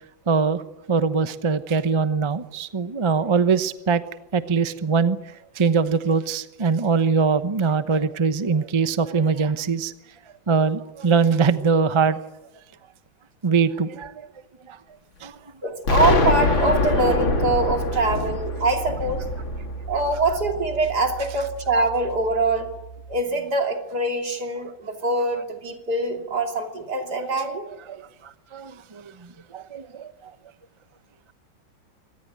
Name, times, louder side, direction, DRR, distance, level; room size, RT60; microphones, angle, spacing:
voice 1, 0.3-0.6 0.9-4.0 4.3-5.2 5.6-9.9 10.5-12.2 13.4-14.3 14.7-14.8 15.2-15.3 27.2-27.3 27.9-29.0 29.5-30.1, right 5 dB, 30° right, 12 dB, 0.5 m, -22 dB
voice 2, 15.6-19.3 19.9-22.7 23.1-27.6, right 2 dB, 55° right, 4 dB, 3.4 m, -24 dB
Explosion, 15.9-20.7, left 3 dB, 80° left, 3.6 m, -24 dB
sound 1, 16.5-23.2, right 5 dB, 20° left, 7.7 m, -34 dB
25.0 x 18.5 x 9.4 m, 1.0 s
omnidirectional pair, 2.1 m